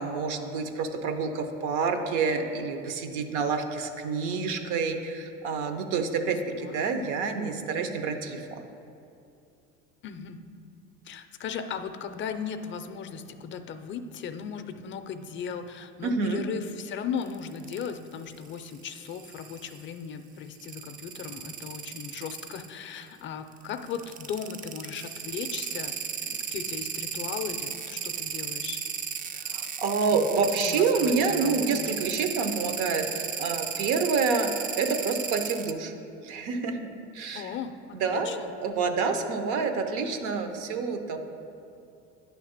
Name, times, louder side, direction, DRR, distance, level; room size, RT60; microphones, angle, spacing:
voice 1, 0.0-8.6 16.0-16.4 29.3-35.9 36.2-37.5 38.0-41.2, right 4 dB, 75° right, 6 dB, 0.8 m, -28 dB
voice 2, 6.6-7.0 10.0-10.4 11.0-26.0 26.3-28.8 30.1-30.3 30.6-31.9 37.3-38.5, left 7 dB, 40° left, 8 dB, 0.4 m, -37 dB
sound 1, 17.2-17.9 18.5-19.8 20.6-22.7 23.8-35.7, right 7 dB, 30° right, 0.3 m, -34 dB
9.3 x 3.3 x 6.4 m, 2.6 s
cardioid pair, 120°, 31 cm